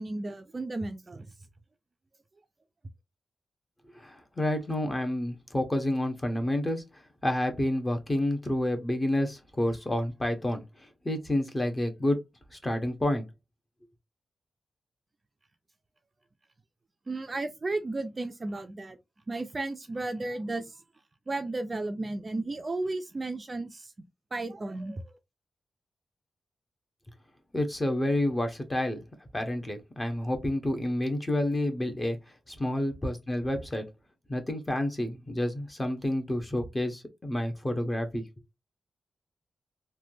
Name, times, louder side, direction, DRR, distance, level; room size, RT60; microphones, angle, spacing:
voice 1, 0.0-1.3 17.1-19.0 19.3-20.8 21.3-23.9 24.3-25.1, right 2 dB, 30° right, 0.4 m, -34 dB
voice 2, 3.9-6.8 7.2-12.2 12.5-13.3 27.5-29.0 29.3-32.2 32.5-33.8 34.3-38.2, left 1 dB, 15° left, 0.9 m, -29 dB
3.3 x 2.2 x 2.7 m
wide cardioid pair, 110°, 0 cm